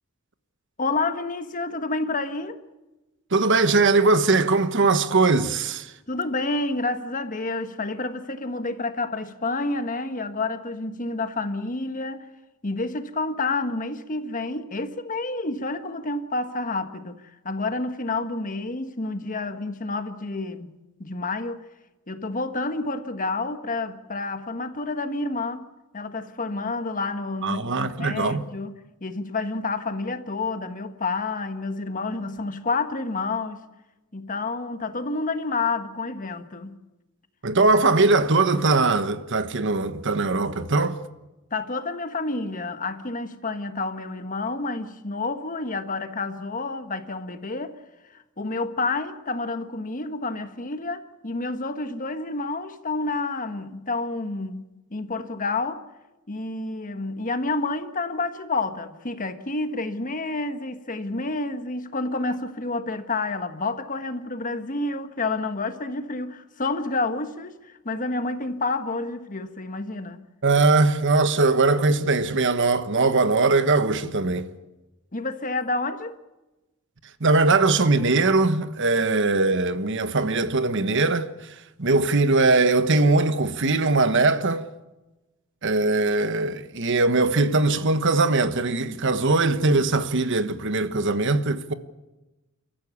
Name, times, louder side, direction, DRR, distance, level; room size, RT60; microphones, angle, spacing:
voice 1, 0.8-2.6 6.1-12.3 12.6-20.7 21.0-21.6 22.1-25.6 25.9-33.6 34.1-36.8 41.5-47.8 48.1-54.6 54.9-55.8 56.3-70.2 75.1-76.2, left 3 dB, 40° left, 1.5 m, -29 dB
voice 2, 3.3-5.9 27.4-28.4 37.4-41.0 70.4-74.5 77.2-81.3 81.8-84.6 85.6-91.7, right 3 dB, 60° right, 1.3 m, -21 dB
29.5 x 14.5 x 8.4 m
head